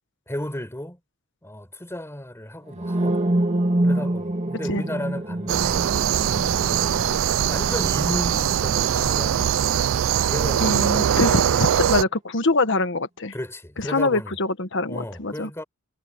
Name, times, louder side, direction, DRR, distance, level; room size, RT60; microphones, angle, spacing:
voice 1, 0.3-1.0 1.4-3.3 3.8-5.9 6.5-6.8 7.5-9.7 10.2-11.9 13.3-14.4 14.8-15.6, left 1 dB, 15° left, 5.2 m, -34 dB
sound 1, 2.7-10.6, right 1 dB, 35° right, 2.2 m, -27 dB
sound 2, 5.5-12.0, right 9 dB, 70° right, 0.4 m, -22 dB
voice 2, 10.6-13.3 13.9-15.5, left 2 dB, 65° left, 1.5 m, -24 dB
head